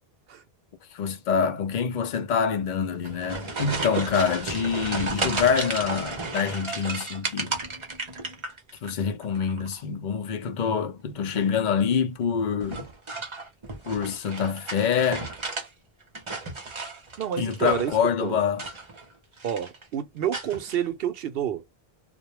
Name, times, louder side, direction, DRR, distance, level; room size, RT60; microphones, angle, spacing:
voice 1, 0.9-7.6 8.8-12.9 13.9-15.3 17.4-18.6, left 6 dB, 55° left, 0.6 m, -26 dB
sound 1, 2.9-8.9 9.2-9.8 11.2-11.6 12.6-15.7 16.0-18.0 18.5-19.1 19.4-19.8 20.3-20.8, right 3 dB, 35° right, 0.7 m, -34 dB
voice 2, 17.2-18.4 19.4-21.6, right 9 dB, 70° right, 0.7 m, -29 dB
2.2 x 2.2 x 3.0 m
omnidirectional pair, 1.1 m